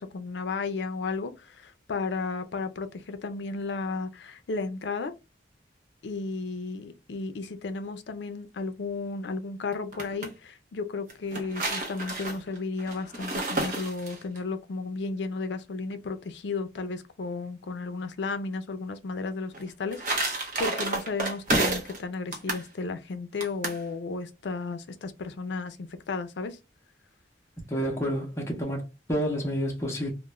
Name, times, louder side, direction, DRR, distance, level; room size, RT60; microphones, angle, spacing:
voice 1, 0.0-5.1 6.0-26.6, left 3 dB, 75° left, 0.4 m, -34 dB
sound 1, 9.7-10.3 11.1-14.4 19.5-22.0 22.3-22.7 23.4-23.8, right 2 dB, 45° right, 0.7 m, -30 dB
voice 2, 27.7-30.1, equal, 15° left, 0.6 m, -29 dB
2.3 x 2.1 x 3.0 m
head